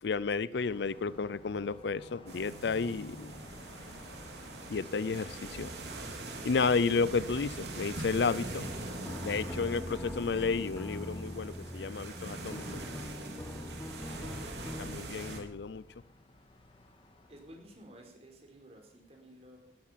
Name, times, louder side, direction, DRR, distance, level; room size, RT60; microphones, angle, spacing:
voice 1, 0.0-3.3 4.7-5.7 6.4-8.7 9.2-12.6 14.2-14.4 14.8-15.8, left 4 dB, 65° left, 19 dB, 0.5 m, -32 dB
Car passing by, 0.6-17.8, left 1 dB, 30° left, 1.8 m, -56 dB
sound 1, 2.3-15.4, right 2 dB, 65° right, 3.1 m, -43 dB
sound 2, 8.3-15.0, left 1 dB, 10° left, 0.6 m, -43 dB
voice 2, 14.2-14.7 17.3-19.6, right 1 dB, 35° right, 2 dB, 4.5 m, -54 dB
17.0 x 13.5 x 5.7 m, 0.76 s
head